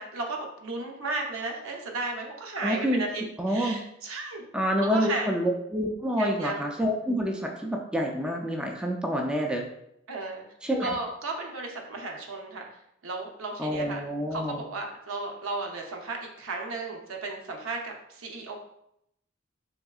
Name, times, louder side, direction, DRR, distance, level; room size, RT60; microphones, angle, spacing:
voice 1, 0.0-4.4 4.8-5.3 6.2-6.6 10.1-10.4 10.8-12.7 13.0-14.0 14.3-18.6, right 3 dB, 85° right, 1 dB, 0.7 m, -34 dB
voice 2, 2.6-3.0 3.4-3.8 4.5-9.6 10.6-10.9 13.6-14.6, equal, 5° right, 1 dB, 0.3 m, -27 dB
3.7 x 3.4 x 2.3 m, 0.78 s
head